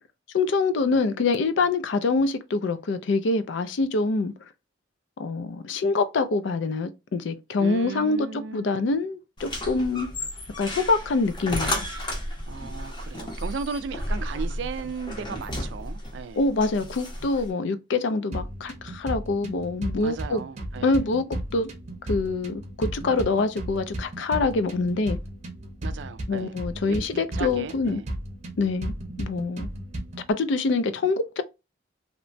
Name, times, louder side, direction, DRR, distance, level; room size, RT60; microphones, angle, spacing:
voice 1, 0.3-4.3 5.2-10.1 10.6-11.9 16.4-20.4 20.8-21.7 22.0-25.2 26.3-28.0 28.6-29.7 30.3-31.4, left 3 dB, 70° left, 0.4 m, -25 dB
voice 2, 7.6-8.8 12.5-16.4 20.0-21.0 25.8-26.6 26.9-28.1, right 5 dB, 70° right, 0.3 m, -36 dB
sound 1, 9.4-17.5, left 1 dB, 25° left, 0.6 m, -33 dB
sound 2, 18.3-30.3, right 1 dB, 35° right, 0.6 m, -35 dB
2.9 x 2.1 x 2.5 m
head